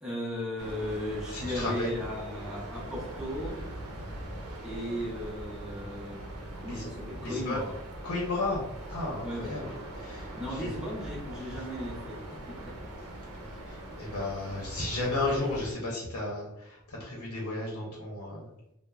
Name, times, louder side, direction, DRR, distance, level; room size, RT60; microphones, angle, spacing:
voice 1, 0.0-3.6 4.6-6.3 6.6-7.8 9.2-9.6 10.3-12.2 12.5-12.7, equal, 5° right, -6 dB, 0.7 m, -36 dB
sound 1, 0.6-15.7, right 1 dB, 85° right, 0.6 m, -41 dB
voice 2, 1.3-1.9 6.7-6.8 7.2-7.6 8.0-8.6 8.9-9.7 10.0-10.7 13.7-18.5, left 2 dB, 85° left, -3 dB, 0.7 m, -33 dB
3.1 x 2.0 x 2.3 m, 0.89 s
head